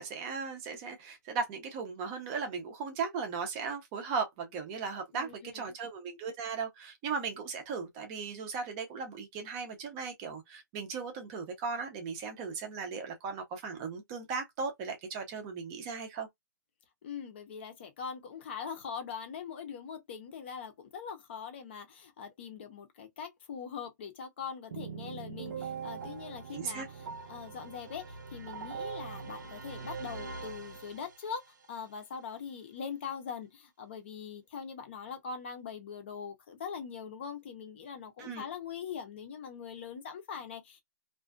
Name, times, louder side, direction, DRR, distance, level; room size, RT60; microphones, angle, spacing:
voice 1, 0.0-16.3 26.5-26.9 38.2-38.5, right 5 dB, 20° right, 0.6 m, -37 dB
voice 2, 5.1-5.7 17.0-31.4 31.7-40.8, left 6 dB, 35° left, 0.7 m, -42 dB
sound 1, 24.7-31.5, right 6 dB, 75° right, 0.7 m, -42 dB
2.5 x 2.3 x 2.2 m
hypercardioid pair, 175°, 10 cm